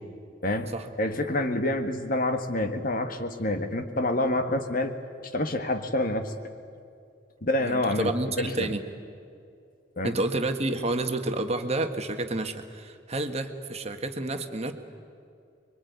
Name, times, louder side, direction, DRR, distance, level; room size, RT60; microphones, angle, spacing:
voice 1, 1.0-4.9 5.3-6.3 7.4-8.7 10.0-10.2, left 1 dB, 50° left, 7 dB, 1.8 m, -27 dB
voice 2, 7.6-8.9 10.0-14.7, right 2 dB, 35° right, 7 dB, 1.6 m, -30 dB
24.5 x 23.0 x 9.6 m, 2.4 s
head